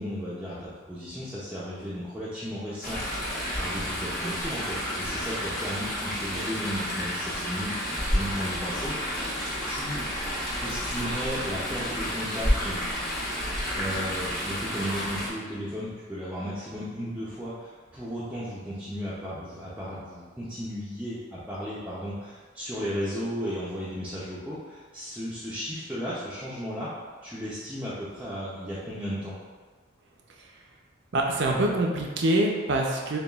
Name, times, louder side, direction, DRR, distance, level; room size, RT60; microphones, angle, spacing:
voice 1, 0.0-3.0 3.5-9.4 9.6-10.1 10.6-12.8 13.7-26.9 27.2-29.3, equal, 5° right, -10 dB, 0.5 m, -35 dB
Chatter / Stream, 2.8-15.3, equal, 45° left, 1.1 m, -30 dB
voice 2, 31.1-33.2, right 1 dB, 55° right, 0 dB, 0.5 m, -25 dB
6.7 x 2.3 x 2.3 m, 1.5 s
head